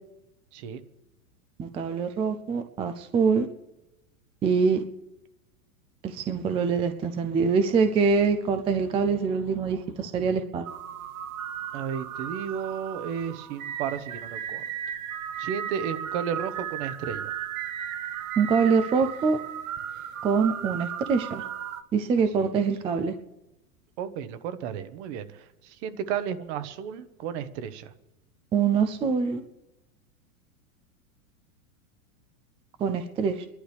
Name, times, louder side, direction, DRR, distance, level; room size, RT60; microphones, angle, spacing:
voice 1, 1.6-3.5 4.4-4.8 6.0-10.7 18.4-19.4 20.2-21.4 21.9-23.1 28.5-29.4 32.8-33.5, right 5 dB, 15° right, 8 dB, 0.4 m, -24 dB
sound 1, 10.6-21.8, right 10 dB, 75° right, 1.0 m, -35 dB
voice 2, 11.7-14.6 15.4-17.3 24.0-25.2 25.8-27.9, right 8 dB, 55° right, 11 dB, 1.2 m, -33 dB
29.0 x 11.5 x 3.3 m, 0.95 s
hypercardioid pair, 125°, 42 cm